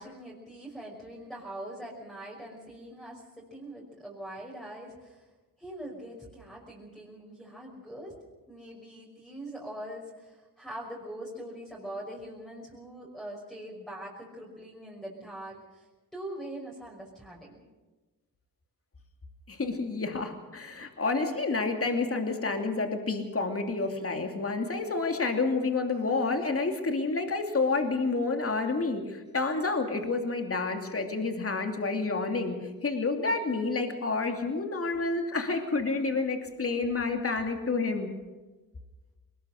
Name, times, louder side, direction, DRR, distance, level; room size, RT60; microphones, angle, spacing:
voice 1, 0.0-5.3 5.6-8.1 8.5-17.6, right 1 dB, ahead, -5 dB, 5.6 m, -43 dB
voice 2, 19.5-32.5 32.8-38.1, left 3 dB, 40° left, 4 dB, 2.8 m, -29 dB
21.0 x 19.5 x 6.6 m, 1.2 s
cardioid pair, 70°, 35 cm